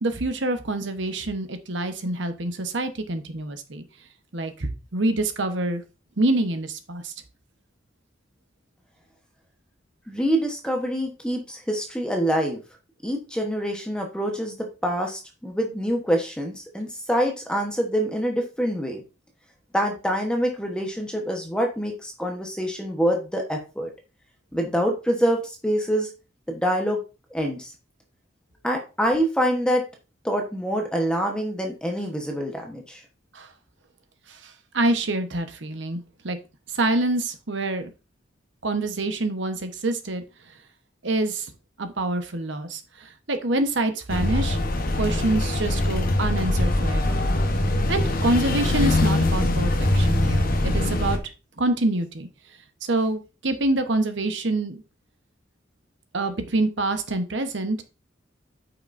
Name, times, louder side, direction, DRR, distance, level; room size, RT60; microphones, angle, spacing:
voice 1, 0.0-3.8 4.3-5.8 6.2-7.1 33.3-33.5 34.3-36.4 36.7-37.9 38.6-40.2 41.0-41.5 41.8-44.6 44.9-47.2 47.9-51.2 51.6-52.3 52.8-54.8 56.1-57.8, right 2 dB, 70° right, 8 dB, 1.1 m, -26 dB
voice 2, 10.1-12.6 13.0-14.6 14.8-19.0 19.7-23.9 24.5-26.1 26.5-27.0 27.3-27.7 28.6-29.8 30.2-33.0, equal, 5° left, 2 dB, 1.1 m, -25 dB
sound 1, 44.1-51.2, left 1 dB, 50° left, 1.0 m, -22 dB
8.4 x 6.0 x 2.6 m, 0.31 s
head